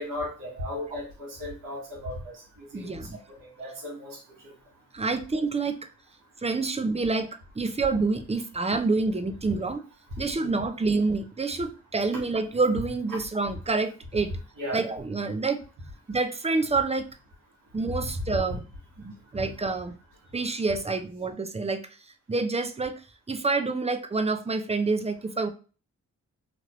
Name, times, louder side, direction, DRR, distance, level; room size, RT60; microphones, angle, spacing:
voice 1, 0.0-2.4 2.7-2.9 3.3-4.5 10.3-10.5 14.6-14.8 18.0-18.6, left 1 dB, 90° right, -1 dB, 1.3 m, -35 dB
voice 2, 2.7-3.2 4.9-5.8 6.4-9.8 10.2-14.3 14.7-15.6 16.1-17.1 17.7-18.6 19.0-19.9 20.3-21.9 22.3-23.0 23.3-25.5, right 3 dB, 20° right, 9 dB, 0.5 m, -27 dB
3.0 x 2.4 x 3.0 m, 0.36 s
supercardioid pair, 45°, 32 cm